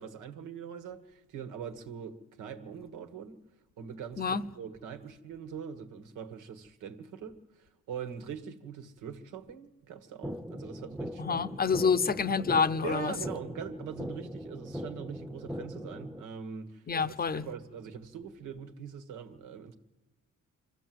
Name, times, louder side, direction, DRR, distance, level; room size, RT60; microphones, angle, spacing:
voice 1, 0.0-3.4 3.8-11.4 11.8-11.9 12.8-19.8, right 7 dB, 90° right, 1.6 m, -42 dB
sound 1, 10.2-16.2, equal, 5° right, 0.8 m, -40 dB
voice 2, 11.2-13.1 16.9-17.5, left 5 dB, 30° left, 0.7 m, -27 dB
25.0 x 14.5 x 7.7 m
cardioid pair, 90°, 30 cm